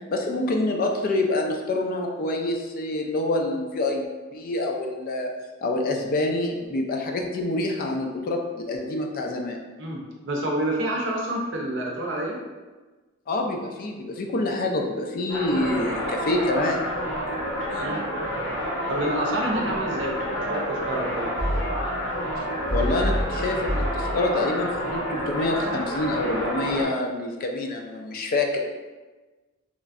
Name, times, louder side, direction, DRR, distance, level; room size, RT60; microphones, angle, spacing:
voice 1, 0.1-4.0 4.3-5.3 5.6-9.6 13.3-16.8 17.7-17.9 22.7-28.6, left 2 dB, 45° left, 2 dB, 0.3 m, -26 dB
voice 2, 9.8-12.4 17.8-18.1 18.9-21.3, right 1 dB, 65° right, -1 dB, 0.6 m, -28 dB
sound 1, 15.3-26.9, equal, 65° left, 0.8 m, -28 dB
3.1 x 2.5 x 2.4 m, 1.3 s
head